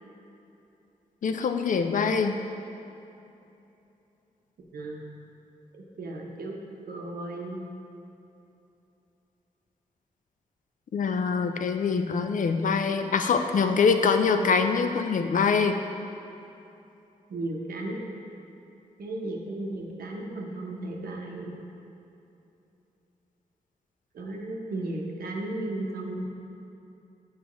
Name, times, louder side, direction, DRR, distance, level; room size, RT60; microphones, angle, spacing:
voice 1, 1.2-2.4 10.9-15.8, left 5 dB, 60° left, 7 dB, 0.4 m, -24 dB
voice 2, 5.7-6.6 6.9-7.6 14.4-14.5 17.3-18.0 19.0-21.5 24.1-26.3, right 2 dB, 75° right, 0 dB, 0.8 m, -35 dB
7.1 x 4.9 x 3.0 m, 2.8 s
cardioid pair, 45°, 15 cm